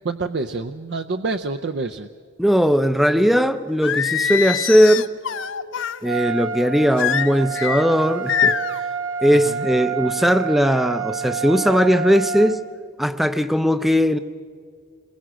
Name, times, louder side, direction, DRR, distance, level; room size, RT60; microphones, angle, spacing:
voice 1, 0.0-2.1 9.3-9.7, right 3 dB, 55° right, 0.5 m, -27 dB
voice 2, 2.4-5.1 6.0-8.6 9.2-12.6 13.0-14.2, equal, ahead, 0.5 m, -18 dB
Singing, 3.8-6.0 7.0-7.8 8.3-8.8, left 8 dB, 75° left, 0.6 m, -23 dB
Trumpet, 6.0-12.6, right 7 dB, 75° right, 1.4 m, -28 dB
28.0 x 21.5 x 6.2 m
head